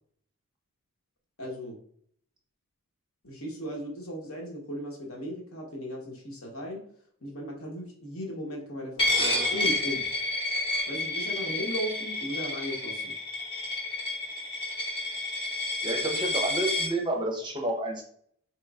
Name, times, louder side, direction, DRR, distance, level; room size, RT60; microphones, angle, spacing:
voice 1, 1.4-1.8 3.2-6.8 7.2-10.0 10.9-13.1, equal, 65° left, -1 dB, 1.1 m, -36 dB
Coin (dropping), 9.0-16.9, left 2 dB, 25° left, 0.9 m, -30 dB
voice 2, 15.8-18.0, right 1 dB, 20° right, 2 dB, 0.6 m, -30 dB
4.4 x 3.0 x 2.4 m, 0.62 s
head